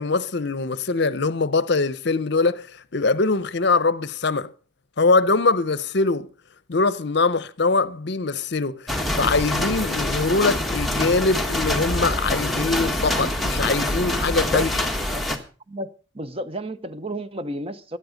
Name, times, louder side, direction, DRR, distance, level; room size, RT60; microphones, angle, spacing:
voice 1, 0.0-2.7 2.9-4.5 5.0-6.3 6.7-14.7, left 3 dB, 60° left, 0.7 m, -22 dB
sound 1, 8.9-15.4, left 1 dB, ahead, 1.5 m, -25 dB
voice 2, 15.7-18.0, equal, 30° right, 0.8 m, -32 dB
16.5 x 11.0 x 5.2 m
head